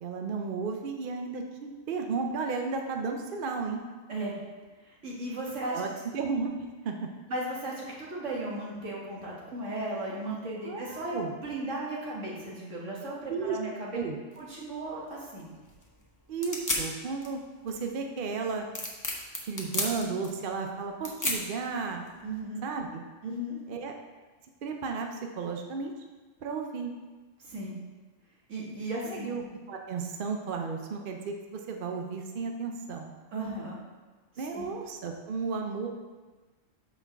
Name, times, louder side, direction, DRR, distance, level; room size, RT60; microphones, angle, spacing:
voice 1, 0.0-3.8 5.7-6.6 6.8-7.1 10.6-11.3 13.3-13.6 13.9-14.2 16.3-18.7 19.4-22.0 22.6-23.0 23.7-23.9 24.6-25.9 26.4-26.9 29.0-33.1 34.4-35.9, right 5 dB, 55° right, 3 dB, 0.7 m, -34 dB
voice 2, 4.8-5.8 7.3-14.0 14.4-15.5 22.2-22.7 23.2-23.6 27.4-27.7 28.5-29.3 33.3-33.8 34.3-34.7, right 1 dB, 70° right, -4 dB, 1.9 m, -36 dB
sound 1, 14.3-22.4, left 1 dB, 15° left, 0.8 m, -36 dB
5.6 x 4.5 x 5.9 m, 1.3 s
omnidirectional pair, 1.3 m